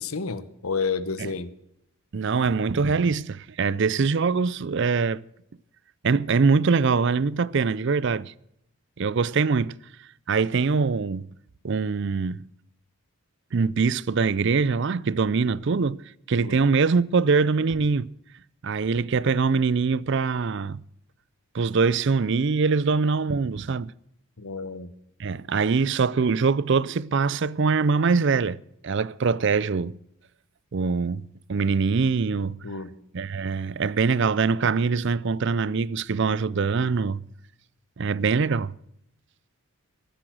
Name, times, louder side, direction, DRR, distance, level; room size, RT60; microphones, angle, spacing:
voice 1, 0.0-1.5 16.4-16.6 24.4-24.9 32.6-32.9, left 4 dB, 80° left, 1.0 m, -30 dB
voice 2, 2.1-5.2 6.0-8.3 9.0-9.8 10.3-11.3 11.6-12.5 13.5-16.0 16.3-18.1 18.6-20.8 21.5-23.9 25.2-28.6 28.8-29.9 30.7-31.2 31.5-32.6 33.1-37.2 38.0-38.7, right 4 dB, 55° right, 0.5 m, -23 dB
15.0 x 12.5 x 6.2 m
head